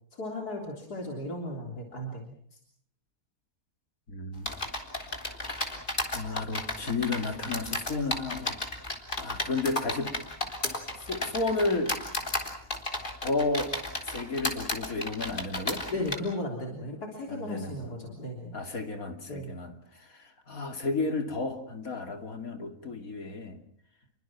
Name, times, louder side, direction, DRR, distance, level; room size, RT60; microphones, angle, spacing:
voice 1, 0.1-2.6 15.9-18.6 19.3-19.5, left 1 dB, 85° left, 1 dB, 4.1 m, -36 dB
voice 2, 4.1-4.5 6.1-8.6 9.2-10.2 10.9-12.0 13.2-13.7 14.0-15.9 17.3-17.9 18.5-23.6, left 3 dB, 65° left, 6 dB, 3.2 m, -32 dB
sound 1, 4.5-16.2, left 1 dB, 30° left, 3.8 m, -33 dB
30.0 x 23.5 x 6.0 m, 0.62 s
omnidirectional pair, 1.6 m